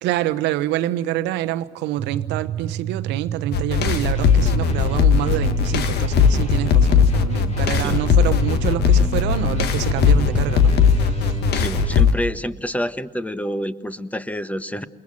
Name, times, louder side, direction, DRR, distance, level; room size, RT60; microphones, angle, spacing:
voice 1, 0.0-11.4, right 13 dB, 70° right, 1.1 m, -27 dB
sound 1, 2.0-12.2, right 11 dB, 45° right, 0.8 m, -30 dB
sound 2, 3.5-12.1, left 6 dB, 65° left, 1.5 m, -18 dB
sound 3, 4.1-12.1, left 2 dB, 40° left, 4.3 m, -36 dB
voice 2, 11.5-14.8, equal, 10° left, 1.4 m, -28 dB
29.0 x 20.5 x 7.6 m
hypercardioid pair, 45°, 18 cm